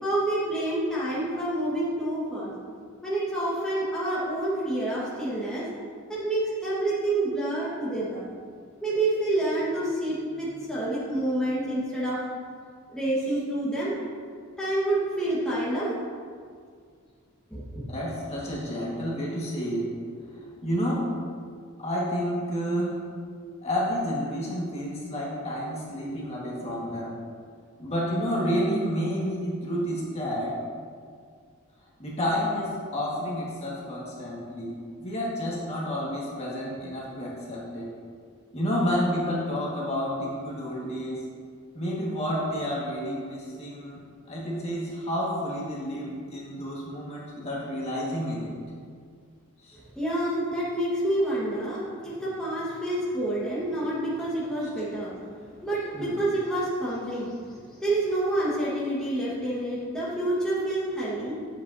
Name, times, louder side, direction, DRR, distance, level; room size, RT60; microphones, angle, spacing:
voice 1, 0.0-2.5 3.0-5.7 6.1-8.2 8.8-12.2 12.9-13.9 14.6-15.9 17.5-17.8 49.9-55.2 55.6-57.3 57.8-61.4, right 1 dB, 5° left, -9 dB, 1.4 m, -28 dB
voice 2, 17.9-19.9 20.3-21.0 21.8-22.9 23.6-27.2 27.8-30.5 32.0-34.7 35.0-37.9 38.5-41.2 41.7-44.0 44.3-48.5 49.6-49.8 55.9-56.2, equal, 30° left, -5 dB, 1.6 m, -30 dB
10.0 x 7.9 x 2.7 m, 2.1 s
head